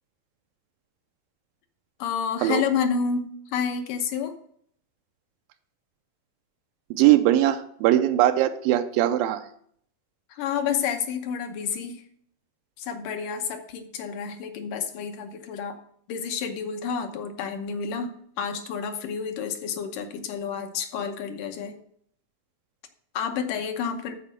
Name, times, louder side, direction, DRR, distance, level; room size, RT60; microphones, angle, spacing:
voice 1, 2.0-4.3 10.3-12.0 12.8-15.8 16.1-21.8 23.1-24.2, left 6 dB, 75° left, 6 dB, 2.5 m, -29 dB
voice 2, 6.9-9.4, right 13 dB, 90° right, 8 dB, 2.4 m, -20 dB
13.0 x 4.5 x 6.3 m, 0.64 s
omnidirectional pair, 4.0 m